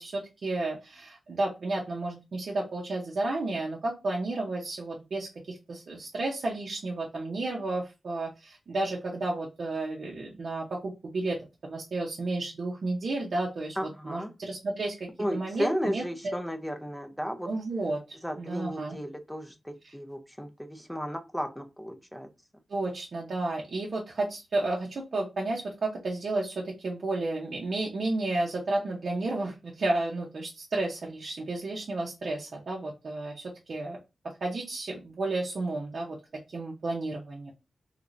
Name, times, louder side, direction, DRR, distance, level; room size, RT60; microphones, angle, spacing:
voice 1, 0.0-16.4 17.4-19.0 19.8-19.9 22.7-34.0 34.4-36.2 36.5-37.5, right 2 dB, 60° right, -2 dB, 0.7 m, -32 dB
voice 2, 13.8-14.3 15.2-17.5 18.2-22.3, equal, ahead, 6 dB, 0.5 m, -34 dB
3.3 x 3.1 x 2.5 m, 0.25 s
wide cardioid pair, 125°, 0 cm